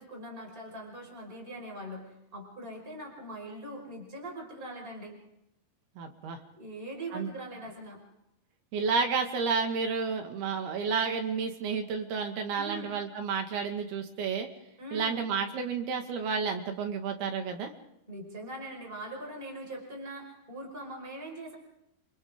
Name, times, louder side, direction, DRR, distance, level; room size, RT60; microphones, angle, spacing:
voice 1, 0.0-5.2 6.5-8.0 12.5-12.9 14.8-15.3 18.1-21.6, right 1 dB, 15° right, 0 dB, 5.3 m, -42 dB
voice 2, 6.0-6.4 7.1-7.3 8.7-14.5 14.9-17.7, right 5 dB, 85° right, 4 dB, 3.9 m, -31 dB
28.5 x 26.5 x 3.7 m, 0.82 s
omnidirectional pair, 4.4 m